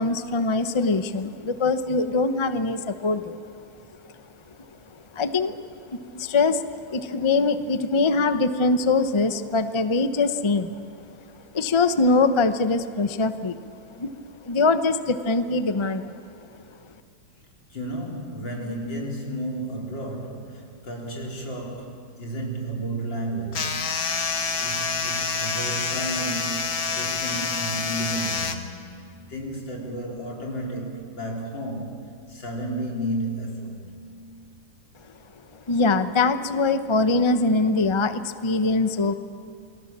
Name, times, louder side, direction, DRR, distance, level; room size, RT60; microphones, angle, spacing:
voice 1, 0.0-3.4 5.1-5.6 5.9-10.7 11.5-13.6 14.0-14.1 14.4-16.2 35.7-39.1, left 3 dB, 35° left, 10 dB, 0.4 m, -23 dB
voice 2, 17.7-24.1 24.4-29.0 29.3-32.0 32.3-33.9, right 1 dB, 75° left, -1 dB, 4.9 m, -32 dB
sound 1, 23.5-28.5, left 5 dB, 50° left, 1.9 m, -27 dB
29.5 x 22.0 x 7.4 m, 2.5 s
omnidirectional pair, 2.0 m